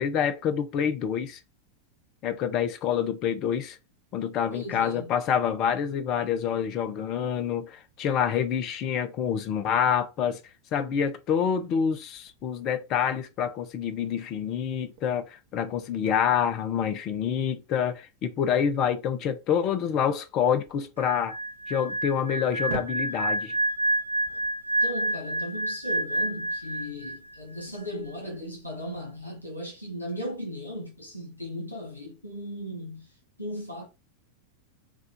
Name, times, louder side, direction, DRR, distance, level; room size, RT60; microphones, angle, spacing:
voice 1, 0.0-1.4 2.2-3.8 4.1-10.4 10.7-21.4 21.7-23.6, left 8 dB, 35° left, 0.7 m, -27 dB
voice 2, 4.5-5.1 24.8-33.9, equal, 85° left, 1.6 m, -37 dB
sound 1, 12.1-25.3, right 6 dB, 50° right, 0.9 m, -48 dB
sound 2, 21.0-27.3 27.6-27.9, right 1 dB, 90° right, 0.5 m, -29 dB
4.8 x 2.5 x 3.7 m
figure-of-eight pair, 90°, 0 cm